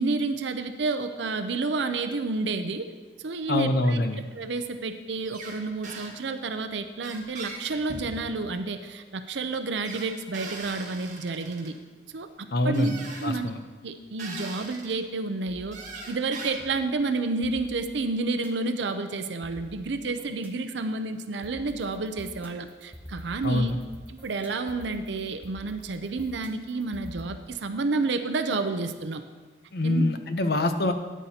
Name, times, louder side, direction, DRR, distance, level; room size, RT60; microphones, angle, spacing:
voice 1, 0.0-2.9 3.2-4.0 4.3-11.7 12.1-12.9 13.2-13.5 13.8-15.8 16.1-23.7 24.1-29.2 29.8-30.0, right 3 dB, 80° right, 8 dB, 0.6 m, -30 dB
voice 2, 3.5-4.3 12.5-13.0 13.2-13.6 23.4-23.7 29.7-30.9, left 1 dB, 55° left, 8 dB, 0.7 m, -25 dB
sound 1, 5.3-5.6 5.8-6.1 7.0-8.4 9.8-11.7 12.7-13.3 14.2-14.9 15.7-16.8, right 3 dB, 45° right, 1.6 m, -40 dB
sound 2, 15.5-16.5 17.4-18.5 19.4-20.5 21.4-27.3, equal, 10° right, 0.7 m, -46 dB
13.0 x 9.2 x 2.8 m, 1.3 s
head